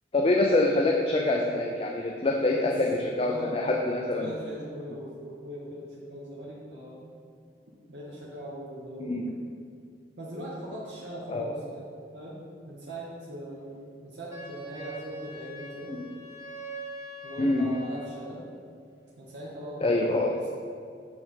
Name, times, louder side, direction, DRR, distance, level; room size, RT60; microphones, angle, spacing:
voice 1, 0.1-4.3 9.0-9.2 11.3-11.6 15.9-16.0 17.4-17.7 19.8-20.4, left 2 dB, 30° left, 0 dB, 0.4 m, -25 dB
voice 2, 3.2-3.7 4.1-7.1 7.9-9.2 10.2-11.8 12.1-12.4 12.6-15.9 17.2-18.4 19.2-20.5, right 1 dB, 70° right, -6 dB, 1.1 m, -40 dB
Wind instrument woodwind instrument, 14.3-18.4, right 1 dB, 15° right, 1.0 m, -42 dB
7.9 x 3.4 x 5.5 m, 2.3 s
head